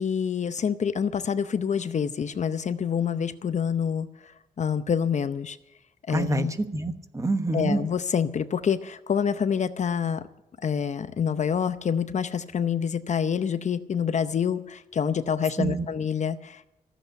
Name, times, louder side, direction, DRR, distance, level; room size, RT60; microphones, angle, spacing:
voice 1, 0.0-4.3 4.6-5.6 6.1-6.5 7.5-10.2 10.6-16.7, left 7 dB, 50° left, 12 dB, 0.7 m, -27 dB
voice 2, 6.1-7.8 15.6-15.8, right 2 dB, 20° right, 9 dB, 1.2 m, -27 dB
14.5 x 8.1 x 9.9 m, 0.88 s
cardioid pair, 90°, 16 cm